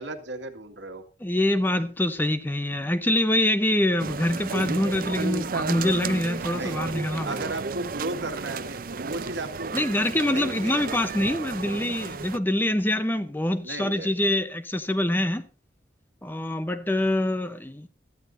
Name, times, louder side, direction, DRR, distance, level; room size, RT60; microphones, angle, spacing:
voice 1, 0.0-1.0 6.5-6.8 7.2-9.7 10.3-11.0 13.6-14.1, right 2 dB, 80° right, 2.0 m, -35 dB
voice 2, 1.2-7.5 9.7-15.4 16.2-17.9, left 1 dB, 10° left, 0.7 m, -25 dB
sound 1, 4.0-12.4, right 4 dB, 50° right, 0.5 m, -33 dB
17.0 x 13.0 x 2.6 m
head